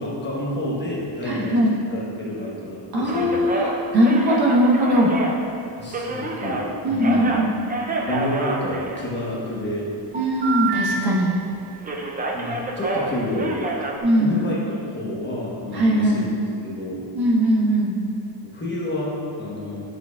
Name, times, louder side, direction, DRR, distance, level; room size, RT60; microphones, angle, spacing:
voice 1, 0.0-1.5 1.9-3.4 5.8-7.4 8.1-9.9 12.3-13.7 14.2-17.0 18.4-19.8, left 1 dB, 25° left, -6 dB, 0.9 m, -29 dB
voice 2, 1.2-1.7 2.9-5.1 6.8-7.5 10.1-11.3 14.0-14.4 15.7-16.2 17.1-18.0, equal, 55° right, -4 dB, 1.2 m, -20 dB
sound 1, 3.1-6.7 6.9-9.4 10.1-11.5 11.8-14.0, right 3 dB, 20° right, 0.4 m, -28 dB
7.5 x 6.3 x 2.3 m, 2.7 s
cardioid pair, 155°, 46 cm